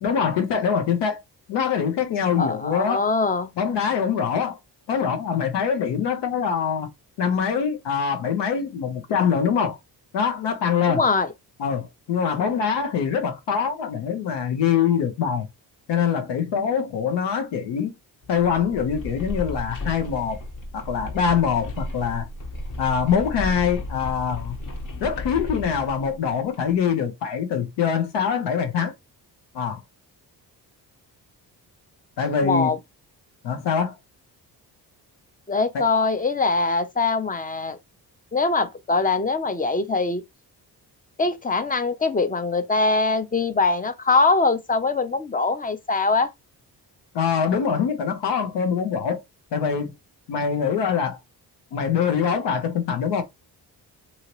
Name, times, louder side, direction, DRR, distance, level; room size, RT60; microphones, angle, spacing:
voice 1, 0.0-1.2 1.5-3.1 3.6-4.6 4.9-6.9 7.2-9.8 10.1-11.0 11.6-15.5 15.9-17.9 18.3-20.4 20.7-22.3 22.8-24.5 25.0-28.9 29.5-29.8 32.2-32.8 33.4-33.9 35.7-35.9 47.1-49.2 49.5-49.9 50.3-51.2 51.7-53.2, left 7 dB, 85° left, 0.7 m, -24 dB
voice 2, 2.4-3.5 10.9-11.3 32.4-32.8 35.5-37.8 38.3-40.2 41.2-46.3, left 3 dB, 20° left, 0.5 m, -22 dB
sound 1, 18.2-26.8, left 1 dB, 50° left, 1.0 m, -34 dB
2.8 x 2.8 x 2.9 m
cardioid pair, 70°, 41 cm